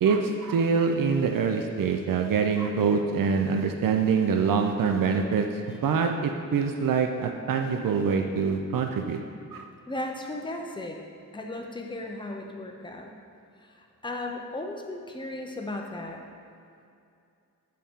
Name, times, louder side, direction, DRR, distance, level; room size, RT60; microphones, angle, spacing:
voice 1, 0.0-9.2 9.5-9.6, right 5 dB, 85° right, 4 dB, 0.5 m, -25 dB
voice 2, 9.9-11.0 11.3-13.1 13.6-16.2, left 2 dB, 15° left, 1 dB, 0.5 m, -36 dB
7.4 x 4.2 x 3.6 m, 2.5 s
wide cardioid pair, 150°, 32 cm